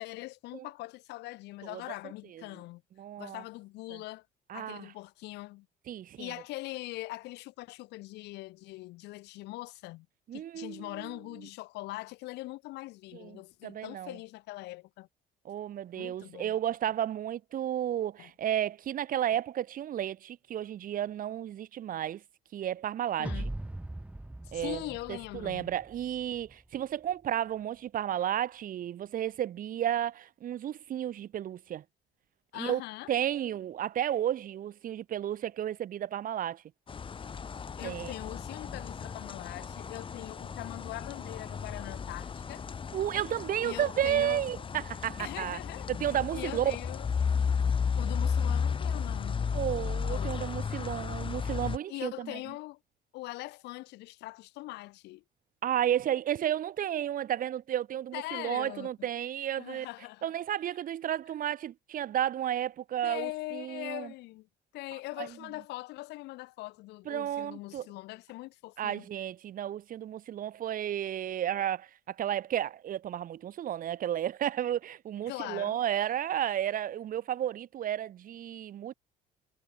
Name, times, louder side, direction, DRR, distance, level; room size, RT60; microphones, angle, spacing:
voice 1, 0.0-2.8 3.2-4.3 4.5-5.7 6.2-10.1 10.3-15.1 16.0-16.6 18.2-18.3 23.2-23.5 24.5-25.7 32.5-33.1 37.8-42.7 43.6-44.4 45.2-45.9 46.3-47.1 48.0-49.5 50.1-50.5 51.9-52.8 53.1-55.2 58.1-59.1 59.6-60.3 63.0-64.5 64.7-69.0 75.3-75.8, left 20 dB, 90° left, 6.2 m, -42 dB
voice 2, 3.0-3.4 3.9-4.0 4.5-4.9 5.9-6.3 10.3-11.1 13.1-14.2 15.5-22.2 22.5-23.4 24.5-24.8 25.1-31.8 32.6-32.8 33.1-36.6 37.8-38.1 42.9-45.6 45.9-46.8 49.5-52.4 55.6-59.9 60.2-64.1 65.2-65.3 67.1-67.9 68.8-78.9, right 11 dB, 55° right, 1.8 m, -32 dB
sound 1, 23.2-26.5, right 1 dB, 5° right, 1.5 m, -40 dB
sound 2, 36.9-51.8, left 6 dB, 30° left, 1.2 m, -34 dB
cardioid pair, 110°, 17 cm